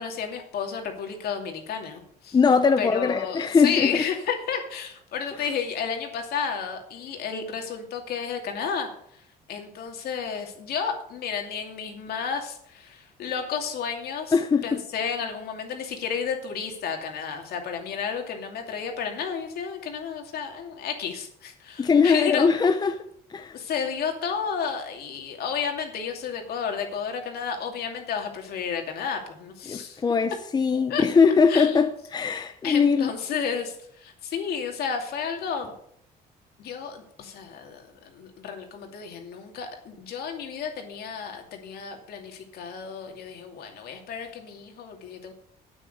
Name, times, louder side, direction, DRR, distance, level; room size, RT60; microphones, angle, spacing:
voice 1, 0.0-2.4 2.8-9.2 9.5-14.3 14.6-22.5 23.5-30.0 30.9-31.0 31.5-31.8 32.6-35.7 36.6-45.3, left 6 dB, 65° left, 2.6 m, -32 dB
voice 2, 2.3-4.1 14.3-14.8 21.8-23.0 23.3-23.6 29.7-33.1, left 5 dB, 25° left, 0.7 m, -21 dB
9.0 x 8.9 x 6.7 m
cardioid pair, 110°, 17 cm